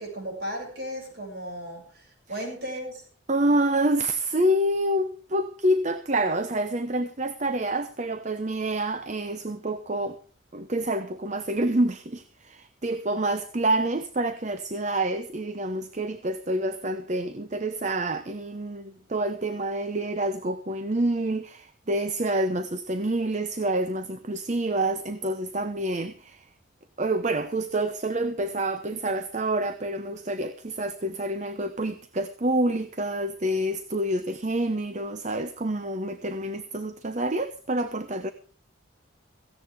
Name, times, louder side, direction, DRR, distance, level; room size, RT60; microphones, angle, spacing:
voice 1, 0.0-3.0, equal, 55° right, 6.8 m, -35 dB
voice 2, 3.3-10.2 10.5-26.4 27.0-38.3, right 1 dB, 40° right, 0.8 m, -27 dB
17.0 x 15.5 x 3.6 m
head